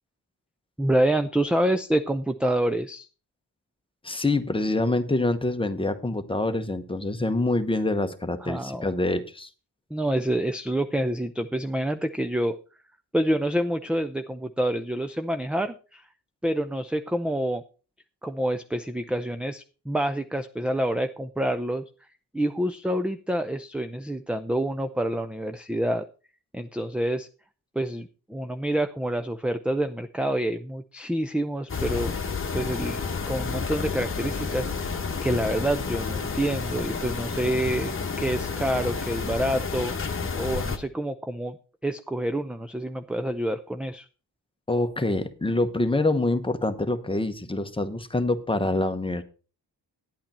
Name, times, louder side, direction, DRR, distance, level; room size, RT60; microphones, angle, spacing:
voice 1, 0.8-3.1 8.4-8.9 9.9-12.6 13.1-16.0 16.4-17.6 18.2-21.8 22.3-26.1 26.5-27.3 27.8-32.2 32.5-34.9 35.2-39.9 40.3-41.6 41.8-44.1, right 1 dB, 5° right, 9 dB, 0.5 m, -27 dB
voice 2, 4.0-9.5 44.7-49.2, left 2 dB, 10° left, 8 dB, 1.0 m, -26 dB
sound 1, 31.7-40.8, left 5 dB, 30° left, 1.2 m, -30 dB
10.5 x 8.6 x 4.3 m, 0.35 s
cardioid pair, 95°, 42 cm